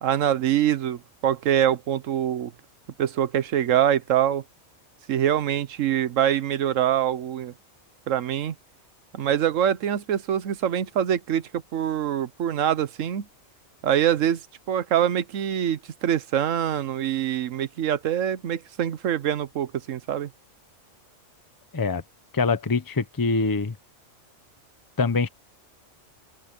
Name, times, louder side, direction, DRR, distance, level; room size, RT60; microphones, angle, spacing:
voice 1, 0.0-2.5 3.0-4.4 5.1-7.5 8.1-8.5 9.1-13.3 13.8-14.4 14.7-20.3, right 10 dB, 75° right, 1.2 m, -24 dB
voice 2, 22.3-23.7 25.0-25.3, left 4 dB, 20° left, 0.8 m, -24 dB
open air
omnidirectional pair, 1.4 m